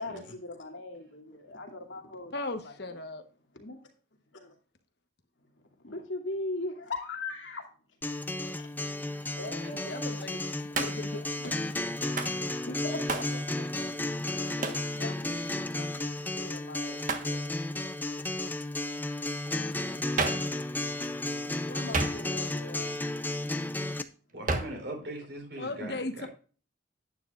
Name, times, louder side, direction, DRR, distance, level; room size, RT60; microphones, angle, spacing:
voice 1, 0.0-2.3 2.6-3.0 3.5-3.9 4.3-4.6 5.8-7.7 8.2-8.3 8.6-8.7 9.1-10.2 10.7-11.5 12.6-13.7 14.5-17.6 18.8-19.0 21.6-23.0, left 2 dB, 85° left, 2.5 m, -41 dB
voice 2, 2.3-3.2 9.8-10.4 10.8-11.5 25.6-26.3, left 2 dB, 55° left, 1.2 m, -37 dB
Acoustic guitar, 8.0-24.0, left 2 dB, 10° left, 0.5 m, -33 dB
Hands, 10.7-11.2 12.2-12.4 13.1-13.4 14.6-14.9 17.1-17.4 20.2-20.5 21.9-22.5 24.5-24.8, right 3 dB, 45° right, 1.3 m, -31 dB
voice 3, 24.3-26.3, right 1 dB, 60° right, 4.3 m, -40 dB
11.5 x 9.6 x 2.5 m
head